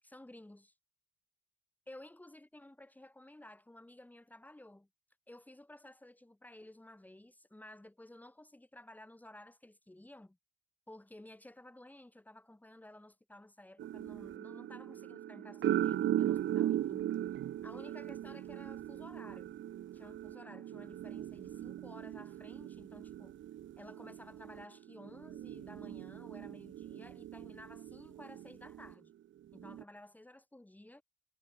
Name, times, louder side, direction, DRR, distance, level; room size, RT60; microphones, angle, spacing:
voice 1, 0.0-0.7 1.9-4.9 5.3-10.4 10.9-17.3 17.6-19.5 19.9-23.4 23.8-29.1 29.5-31.0, left 1 dB, 10° left, 4.5 m, -54 dB
sound 1, 13.8-28.9 29.5-29.8, right 12 dB, 70° right, 1.9 m, -38 dB
cardioid pair, 120°, 21 cm